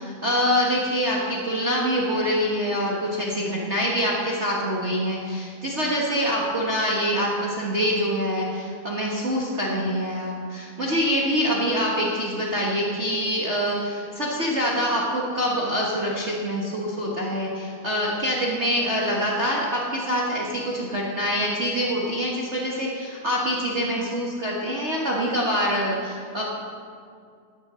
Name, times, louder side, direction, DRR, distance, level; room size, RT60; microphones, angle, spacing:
voice 1, 0.0-26.4, equal, 75° right, -4 dB, 0.6 m, -25 dB
12.0 x 9.0 x 6.2 m, 2.3 s
omnidirectional pair, 3.5 m